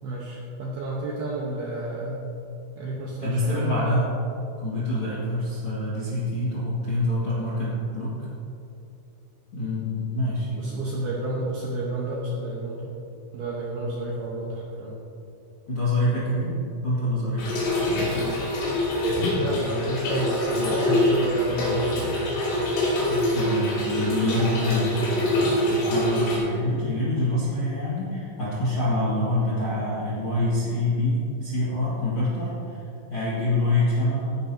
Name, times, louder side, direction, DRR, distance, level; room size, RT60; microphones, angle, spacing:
voice 1, 0.0-2.3 2.8-3.9 10.6-12.9 13.3-15.0 19.3-22.4, right 2 dB, 70° right, -4 dB, 2.5 m, -31 dB
voice 2, 3.2-4.1 4.6-8.1 9.5-10.6 15.7-17.8 18.9-19.0 23.1-32.8 33.1-34.4, left 1 dB, 50° left, -9 dB, 1.6 m, -26 dB
Trickle dribble / Fill (with liquid), 17.4-26.4, left 1 dB, 70° left, 5.2 m, -25 dB
17.0 x 10.5 x 2.9 m, 2.8 s
omnidirectional pair, 6.0 m